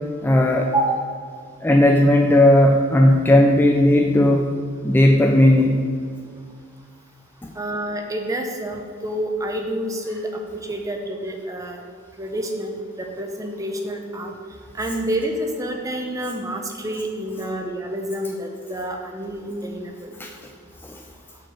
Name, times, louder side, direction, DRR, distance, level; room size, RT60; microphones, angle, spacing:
voice 1, 0.2-0.7 1.6-4.5 4.8-5.8 7.4-7.5 20.2-20.3, left 1 dB, 10° left, 1 dB, 0.4 m, -15 dB
voice 2, 0.7-1.1 7.6-11.8 12.2-14.3 14.7-20.1, right 1 dB, 15° right, 2 dB, 0.7 m, -28 dB
6.2 x 4.4 x 6.5 m, 2.1 s
head